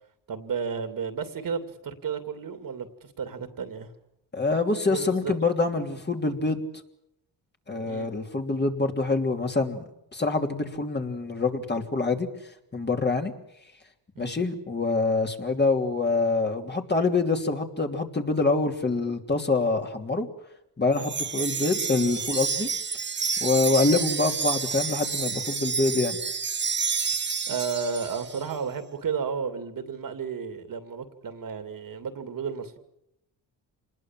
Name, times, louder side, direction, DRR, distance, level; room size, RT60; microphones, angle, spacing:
voice 1, 0.3-3.9 4.9-5.4 7.9-8.1 14.1-14.4 27.5-32.8, right 6 dB, 55° right, 9 dB, 2.8 m, -33 dB
voice 2, 4.3-6.6 7.7-9.8 10.1-13.3 14.2-20.3 20.8-22.7 23.4-26.2, left 3 dB, 25° left, 3 dB, 3.0 m, -25 dB
Wind chime, 20.9-28.4, right 5 dB, 30° right, 1.0 m, -29 dB
26.5 x 20.5 x 7.6 m, 0.81 s
cardioid pair, 80°, 39 cm